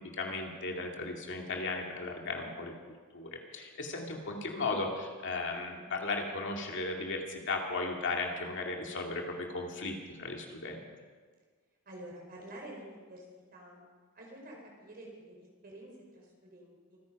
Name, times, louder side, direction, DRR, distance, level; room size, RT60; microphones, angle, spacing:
voice 1, 0.1-2.7 3.1-10.8, left 3 dB, 55° left, 1 dB, 2.2 m, -36 dB
voice 2, 11.8-13.2 13.5-13.8 14.1-17.0, right 1 dB, 45° right, -1 dB, 4.7 m, -49 dB
24.5 x 9.9 x 5.3 m, 1.5 s
head